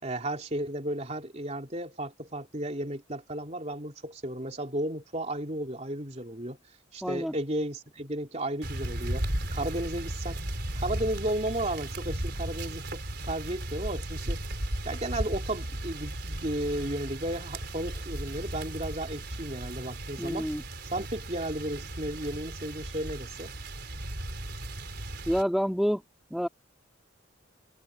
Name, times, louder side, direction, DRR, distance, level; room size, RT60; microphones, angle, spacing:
voice 1, 0.0-6.6 6.9-10.4 10.7-14.4 14.8-20.5 20.9-23.5, right 1 dB, 35° right, 3.2 m, -34 dB
voice 2, 7.0-7.4 20.2-20.6 25.3-26.0 26.3-26.5, equal, ahead, 3.5 m, -28 dB
sound 1, 8.6-25.4, right 1 dB, 55° right, 5.0 m, -36 dB
head